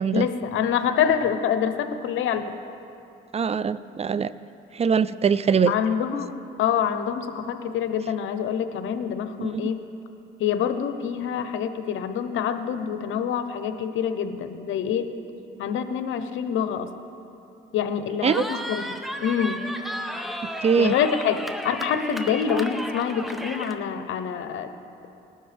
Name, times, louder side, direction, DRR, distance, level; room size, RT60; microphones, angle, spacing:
voice 1, 0.1-2.4 5.7-9.9 10.4-15.1 15.6-16.9 17.7-18.8 19.2-19.7 20.8-24.7, left 8 dB, 80° left, 9 dB, 0.8 m, -26 dB
voice 2, 3.3-4.3 4.7-5.7 9.4-9.7 18.2-18.4 20.6-21.0, right 6 dB, 30° right, 16 dB, 0.4 m, -22 dB
Cheering, 18.3-23.8, equal, ahead, 0.8 m, -33 dB
19.5 x 12.0 x 3.4 m, 2.7 s
cardioid pair, 90°, 20 cm